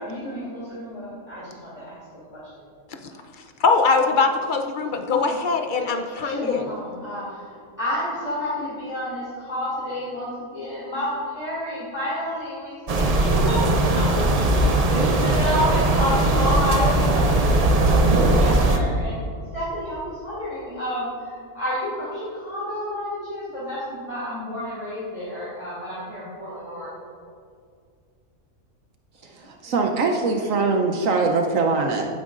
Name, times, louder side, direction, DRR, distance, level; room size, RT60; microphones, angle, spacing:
voice 1, 0.0-2.0 2.3-2.5 5.1-5.3 6.2-19.2 19.5-27.0 29.4-29.7 30.5-31.1, equal, 25° left, -10 dB, 2.8 m, -30 dB
voice 2, 3.6-6.7, left 4 dB, 50° left, 6 dB, 0.6 m, -22 dB
sound 1, 12.9-18.8, right 2 dB, 35° right, 0.6 m, -19 dB
voice 3, 29.3-32.1, right 3 dB, 70° right, 3 dB, 1.1 m, -22 dB
15.5 x 9.2 x 2.5 m, 2.2 s
omnidirectional pair, 1.5 m